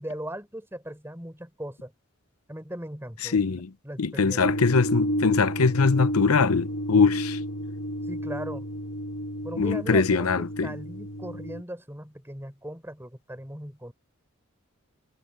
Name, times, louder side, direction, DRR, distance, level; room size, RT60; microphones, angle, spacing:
voice 1, 0.0-1.9 2.5-4.5 8.1-8.7 9.4-13.9, right 1 dB, 10° right, 3.9 m, -38 dB
voice 2, 3.2-3.7 4.0-7.4 9.6-10.7, left 4 dB, 85° left, 0.8 m, -22 dB
sound 1, 4.4-11.6, equal, 65° left, 2.4 m, -31 dB
head